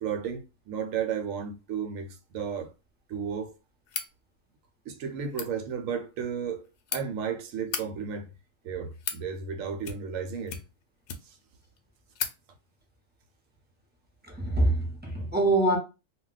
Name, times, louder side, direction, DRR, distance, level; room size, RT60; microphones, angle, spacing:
voice 1, 0.0-2.7 3.1-3.6 4.9-8.3 8.6-10.6 11.2-11.4, right 7 dB, 75° right, 1.0 m, -33 dB
sound 1, 3.9-4.1 5.2-5.5 6.5-7.0 7.6-7.8 8.6-9.2 9.8-10.2 10.5-11.4 11.8-11.9 12.1-12.4, left 7 dB, 65° left, 0.8 m, -35 dB
voice 2, 14.3-15.8, right 2 dB, 10° right, 0.5 m, -24 dB
2.2 x 2.2 x 3.8 m
omnidirectional pair, 1.4 m